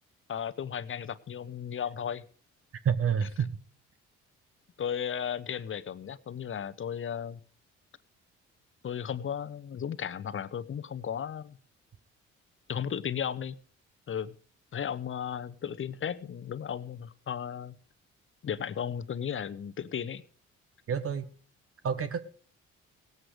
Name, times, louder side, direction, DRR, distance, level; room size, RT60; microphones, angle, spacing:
voice 1, 0.3-2.2 3.2-3.3 4.8-7.4 8.8-11.6 12.7-13.6 14.1-14.4 14.7-17.8 18.4-20.2, left 8 dB, 45° left, 15 dB, 0.9 m, -35 dB
voice 2, 2.8-3.6 20.9-21.2 21.8-22.2, right 7 dB, 50° right, 11 dB, 1.2 m, -28 dB
17.5 x 7.9 x 4.9 m, 0.43 s
supercardioid pair, 70°, 30 cm